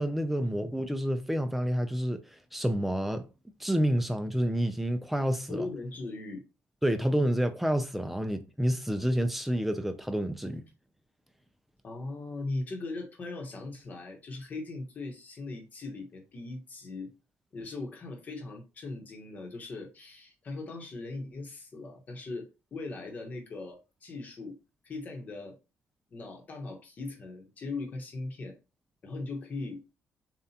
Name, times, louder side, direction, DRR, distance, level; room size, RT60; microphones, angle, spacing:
voice 1, 0.0-2.2 2.5-3.3 3.6-5.7 6.8-10.6, equal, 5° right, 0.4 m, -29 dB
voice 2, 5.5-6.4 11.8-17.1 17.5-24.6 24.8-25.6 26.1-28.6 29.0-29.8, left 3 dB, 35° left, 1.1 m, -39 dB
6.9 x 2.4 x 2.8 m
cardioid pair, 175°, 5 cm